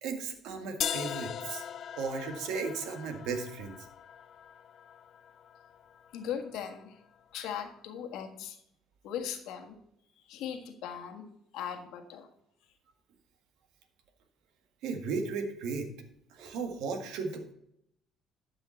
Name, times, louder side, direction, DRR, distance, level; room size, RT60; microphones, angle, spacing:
voice 1, 0.0-3.8 14.8-15.9 16.3-17.5, right 4 dB, 80° right, 6 dB, 1.7 m, -35 dB
sound 1, 0.8-6.8, left 9 dB, 55° left, 0.5 m, -40 dB
voice 2, 6.1-6.9 7.3-8.6 9.0-9.8 10.3-11.2 11.5-12.3, left 8 dB, 80° left, 4 dB, 1.5 m, -38 dB
11.5 x 5.6 x 4.4 m, 0.73 s
supercardioid pair, 85°, 0 cm